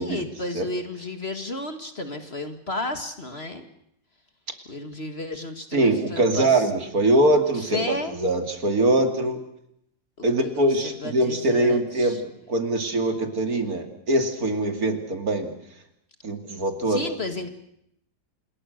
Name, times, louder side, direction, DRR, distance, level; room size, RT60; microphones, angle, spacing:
voice 1, 0.0-3.7 4.7-6.7 7.5-8.1 10.2-12.2 16.9-17.5, left 2 dB, 35° left, 8 dB, 2.2 m, -33 dB
voice 2, 5.7-9.4 10.2-15.5 16.2-17.0, right 1 dB, 55° right, 7 dB, 3.0 m, -23 dB
27.5 x 21.0 x 6.5 m, 0.75 s
omnidirectional pair, 1.8 m